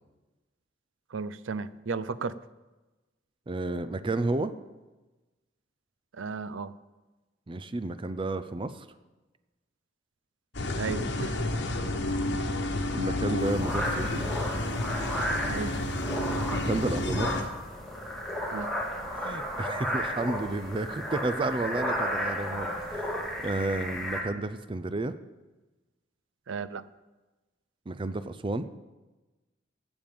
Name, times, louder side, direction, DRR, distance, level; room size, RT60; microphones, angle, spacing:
voice 1, 1.1-2.4 6.1-6.7 10.8-11.4 15.4-15.7 18.5-18.7 26.5-26.8, right 5 dB, 85° right, 16 dB, 0.5 m, -34 dB
voice 2, 3.5-4.5 7.5-8.9 11.8-12.0 12.9-14.3 16.5-17.5 19.2-25.2 27.9-28.6, right 2 dB, 25° right, 12 dB, 0.5 m, -31 dB
sound 1, 10.5-17.4, left 1 dB, 65° left, 1.2 m, -30 dB
sound 2, 13.4-24.2, equal, ahead, 2.0 m, -33 dB
15.0 x 7.1 x 5.3 m, 1.1 s
head